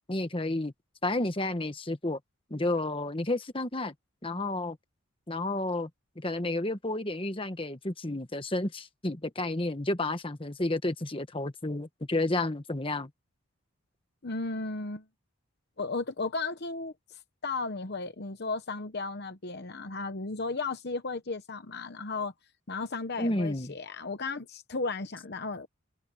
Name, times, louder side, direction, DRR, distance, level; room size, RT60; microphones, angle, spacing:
voice 1, 0.1-0.7 1.0-2.2 2.5-3.9 4.2-4.8 5.3-5.9 6.2-13.1 23.2-23.7, left 2 dB, 25° left, 1.3 m, -31 dB
voice 2, 14.2-15.0 15.8-22.3 22.7-25.7, left 3 dB, 50° left, 0.9 m, -35 dB
head